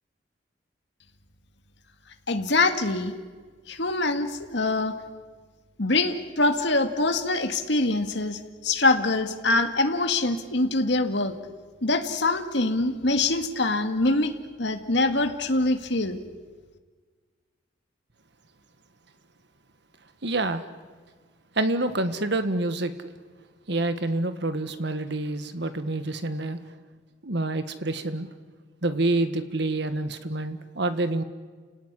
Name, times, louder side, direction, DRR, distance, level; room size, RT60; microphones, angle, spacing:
voice 1, 2.3-3.1 3.7-5.0 5.8-11.4 11.8-14.3 14.6-16.2, left 2 dB, 60° left, 7 dB, 2.0 m, -24 dB
voice 2, 20.2-20.6 21.5-22.9 23.7-26.6 27.2-28.3 28.8-31.2, right 2 dB, 60° right, 10 dB, 1.6 m, -27 dB
30.0 x 17.5 x 9.9 m, 1.5 s
head